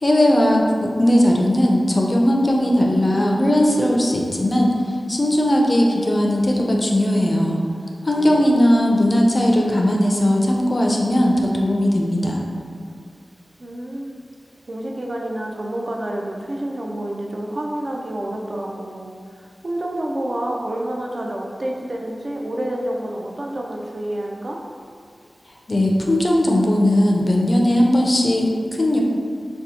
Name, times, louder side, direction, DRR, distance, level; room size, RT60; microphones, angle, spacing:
voice 1, 0.0-4.7 5.1-7.6 8.0-12.4 25.7-29.0, left 1 dB, 40° left, -1 dB, 0.4 m, -18 dB
voice 2, 8.1-8.5 13.6-14.1 14.7-19.1 19.4-24.6, right 1 dB, 50° right, -1 dB, 0.3 m, -28 dB
2.7 x 2.0 x 4.0 m, 2.1 s
wide cardioid pair, 85°, 0 cm